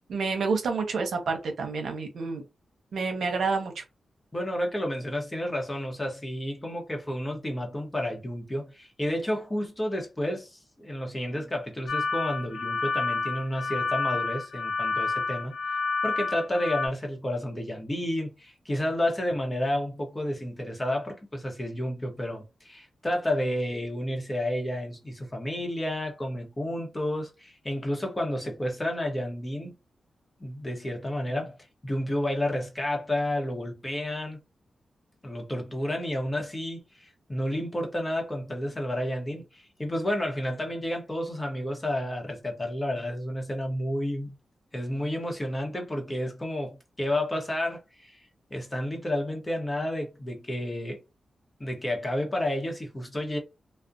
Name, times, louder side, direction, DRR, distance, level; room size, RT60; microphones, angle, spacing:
voice 1, 0.1-2.4 2.9-3.8, right 4 dB, 80° right, 0.7 m, -28 dB
voice 2, 4.3-29.7 30.4-31.6 31.8-34.4 35.2-44.3 44.7-51.0 51.6-53.4, left 1 dB, 20° left, 0.8 m, -31 dB
sound 1, 11.9-16.9, left 4 dB, 90° left, 0.5 m, -29 dB
2.4 x 2.1 x 2.5 m
cardioid pair, 75°, 0 cm